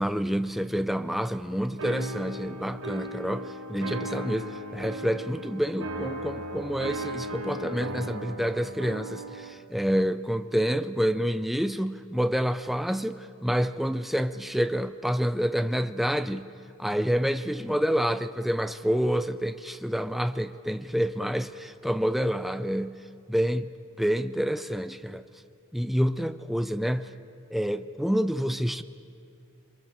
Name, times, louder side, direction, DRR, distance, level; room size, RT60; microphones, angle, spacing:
voice 1, 0.0-16.5 16.8-23.0 23.3-23.7 24.0-25.2 25.7-27.1 27.5-28.8, equal, ahead, 0.5 m, -28 dB
sound 1, 1.8-9.6, right 1 dB, 85° right, 3.6 m, -37 dB
26.0 x 23.0 x 7.5 m
head